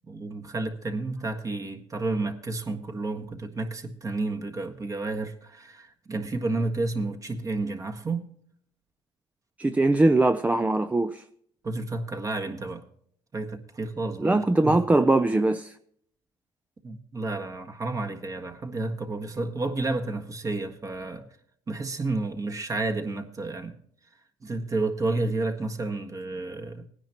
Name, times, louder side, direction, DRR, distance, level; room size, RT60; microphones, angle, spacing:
voice 1, 0.0-8.3 11.6-12.8 13.3-14.8 16.8-21.3 21.7-23.8 24.4-26.8, right 2 dB, 30° right, 1.6 m, -31 dB
voice 2, 9.6-11.2 14.2-15.7, right 2 dB, 15° right, 0.5 m, -21 dB
18.5 x 10.0 x 3.0 m
cardioid pair, 100°, 11 cm